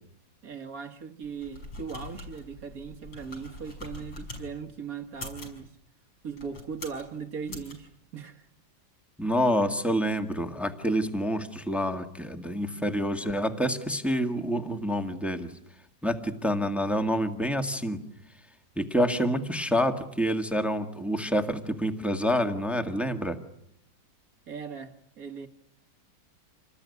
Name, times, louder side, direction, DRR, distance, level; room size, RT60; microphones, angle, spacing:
voice 1, 0.4-5.7 6.2-8.5 24.5-25.5, right 6 dB, 50° right, 2.1 m, -39 dB
sound 1, 1.2-4.5 5.1-5.6 6.3-7.1 7.5-7.7, left 2 dB, 75° left, 6.4 m, -43 dB
voice 2, 9.2-15.5 16.0-18.0 18.8-23.4, equal, ahead, 1.6 m, -27 dB
28.0 x 20.0 x 9.7 m
omnidirectional pair, 2.0 m